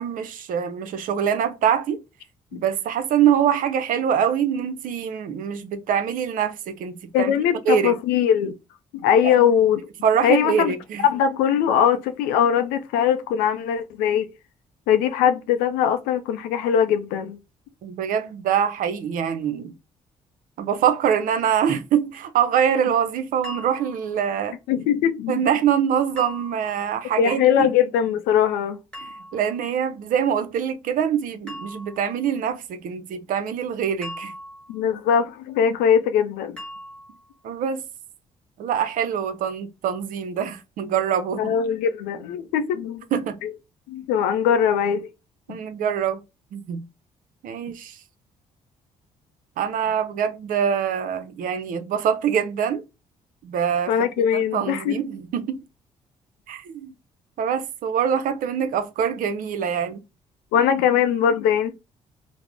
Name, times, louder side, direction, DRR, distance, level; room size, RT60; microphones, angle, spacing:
voice 1, 0.0-2.0 2.5-7.3 7.7-8.0 9.2-9.3 10.0-11.0 17.8-19.7 20.6-24.6 25.3-27.7 29.0-34.3 37.4-37.8 38.6-41.5 43.1-43.4 45.5-46.2 46.5-46.8 47.4-48.0 49.6-52.8 53.4-55.6 56.5-56.9 57.4-60.0, right 8 dB, 65° right, 0.5 m, -24 dB
voice 2, 7.1-8.5 8.9-9.9 10.2-10.7 11.0-14.3 14.9-17.4 24.7-25.4 27.2-28.8 34.7-36.6 41.4-43.0 43.4-43.5 43.9-45.1 45.5-45.6 53.9-55.0 60.5-61.7, left 8 dB, 80° left, 0.4 m, -21 dB
sound 1, 23.4-24.2 26.2-26.9 28.9-29.6 31.5-32.2 34.0-34.9 36.6-37.3, left 1 dB, 5° left, 1.2 m, -39 dB
2.4 x 2.0 x 3.3 m
hypercardioid pair, 55°, 15 cm